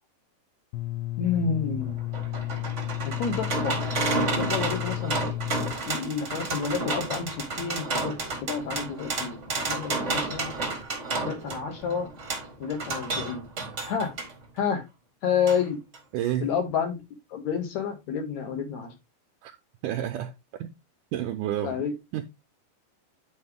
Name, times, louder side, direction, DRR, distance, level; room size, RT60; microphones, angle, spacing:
sound 1, 0.7-5.7, left 16 dB, 85° left, 2.3 m, -32 dB
voice 1, 1.2-1.9 3.0-3.9 4.3-5.2 5.9-10.6 11.2-12.1 12.6-13.5 13.9-14.1 14.6-14.8 15.2-15.8 16.4-17.0 17.3-18.9 21.6-21.9, left 6 dB, 55° left, 2.9 m, -29 dB
sound 2, 1.8-14.3 15.5-15.6 15.9-16.0, right 3 dB, 35° right, 1.1 m, -31 dB
voice 2, 16.1-16.5 19.4-19.5 19.8-20.3 20.6-20.7 21.1-21.8 22.1-22.2, right 11 dB, 80° right, 2.0 m, -29 dB
9.6 x 4.7 x 3.5 m
omnidirectional pair, 4.2 m